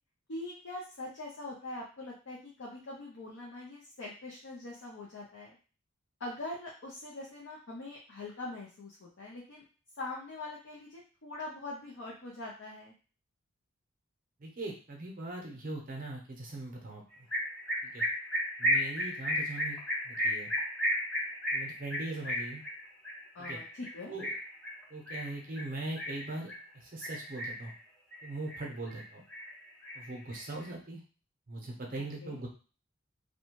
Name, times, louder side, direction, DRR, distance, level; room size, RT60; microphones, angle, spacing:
voice 1, 0.3-5.6 6.2-9.6 10.0-12.9 23.3-24.1 32.2-32.4, left 2 dB, 60° left, -3 dB, 0.5 m, -43 dB
voice 2, 14.4-17.3 17.8-18.0 18.6-19.8 20.0-20.5 21.5-22.6 23.4-23.6 24.1-24.4 24.9-27.7 28.2-29.2 29.9-31.0 31.5-32.5, right 2 dB, 40° right, 0 dB, 0.6 m, -40 dB
sound 1, 17.3-26.6 27.0-27.7 28.1-29.0 29.3-30.6, equal, 5° left, 0.6 m, -34 dB
2.7 x 2.2 x 2.9 m, 0.37 s
head